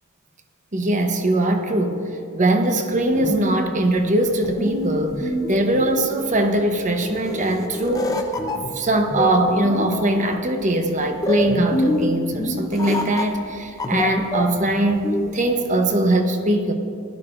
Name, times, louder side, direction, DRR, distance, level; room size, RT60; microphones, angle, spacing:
voice 1, 0.7-8.2 8.7-16.7, right 1 dB, 35° right, 5 dB, 0.9 m, -21 dB
sound 1, 2.9-15.4, left 1 dB, 15° left, 0.8 m, -27 dB
16.5 x 11.5 x 2.5 m, 2.6 s
head